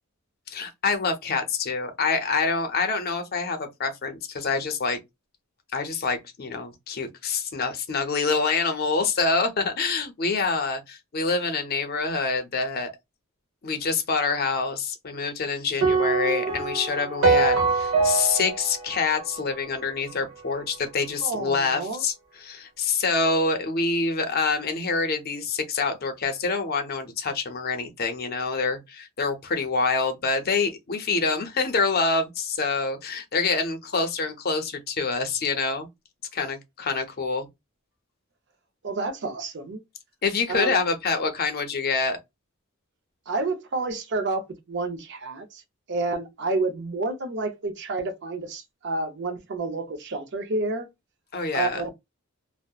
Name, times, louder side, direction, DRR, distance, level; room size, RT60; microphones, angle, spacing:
voice 1, 0.5-5.0 5.7-12.9 13.6-22.1 22.4-35.9 36.3-37.5 40.2-42.2 51.3-51.8, left 4 dB, 45° left, 0.5 m, -26 dB
sound 1, 15.8-20.1, right 4 dB, 80° right, 1.0 m, -24 dB
voice 2, 21.2-22.0 38.8-39.8 40.5-40.9 43.3-45.6 45.9-50.9 51.5-51.9, right 3 dB, 55° right, 0.5 m, -29 dB
2.7 x 2.1 x 2.2 m
head